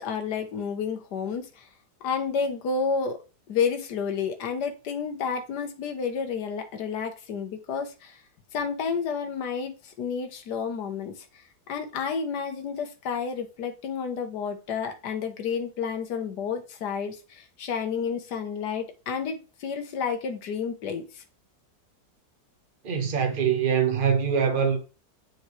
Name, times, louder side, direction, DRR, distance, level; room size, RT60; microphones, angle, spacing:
voice 1, 0.0-1.7 2.0-3.2 3.5-8.2 8.5-21.2, left 6 dB, 75° left, 1.6 m, -30 dB
voice 2, 22.8-24.8, right 7 dB, 35° right, 1.3 m, -23 dB
7.1 x 4.8 x 3.2 m
omnidirectional pair, 1.8 m